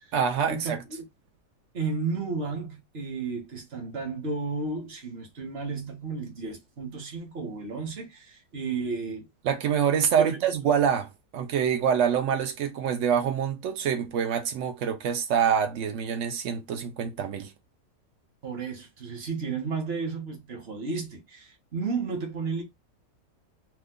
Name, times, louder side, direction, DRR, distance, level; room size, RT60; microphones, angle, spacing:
voice 1, 0.1-0.8 9.4-17.5, right 8 dB, 80° right, 0.6 m, -26 dB
voice 2, 1.7-9.3 10.2-10.3 18.4-22.6, right 4 dB, 45° right, 1.0 m, -33 dB
2.8 x 2.2 x 3.6 m
omnidirectional pair, 1.8 m